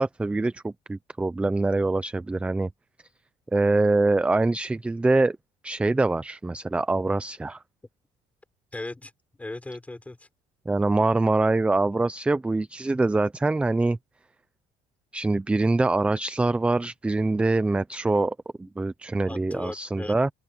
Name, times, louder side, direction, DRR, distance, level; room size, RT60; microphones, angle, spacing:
voice 1, 0.0-2.7 3.5-5.4 5.6-7.6 10.7-14.0 15.1-20.3, right 2 dB, 10° right, 0.4 m, -24 dB
voice 2, 8.7-9.1 9.4-10.3 19.3-20.2, left 2 dB, 10° left, 5.1 m, -37 dB
open air
cardioid pair, 145°, 15 cm